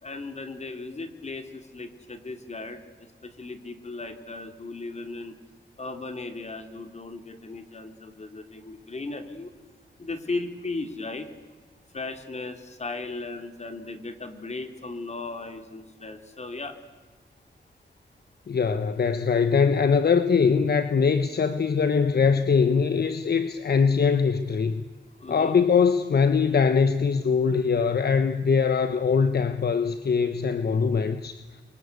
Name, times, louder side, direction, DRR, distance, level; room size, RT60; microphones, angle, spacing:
voice 1, 0.0-2.8 3.2-5.3 5.8-9.5 10.0-11.3 11.9-16.8 25.2-25.6, left 3 dB, 35° left, 7 dB, 2.9 m, -36 dB
voice 2, 18.5-24.8 25.3-31.4, left 5 dB, 55° left, 10 dB, 1.2 m, -22 dB
29.0 x 24.5 x 8.3 m, 1.3 s
wide cardioid pair, 115°, 19 cm